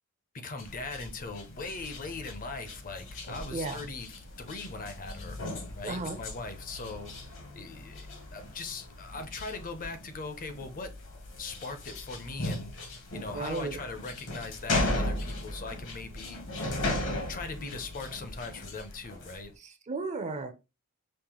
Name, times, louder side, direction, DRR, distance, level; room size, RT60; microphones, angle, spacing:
voice 1, 0.3-4.1 4.4-10.9 11.4-12.7 13.1-16.8 17.3-19.5, left 3 dB, 40° left, 0.6 m, -40 dB
sound 1, 0.6-19.4, left 1 dB, 60° left, 1.1 m, -37 dB
voice 2, 3.5-3.9 5.8-6.2 13.3-13.8 19.6-20.5, right 3 dB, 30° right, 0.5 m, -34 dB
5.2 x 2.0 x 2.9 m
head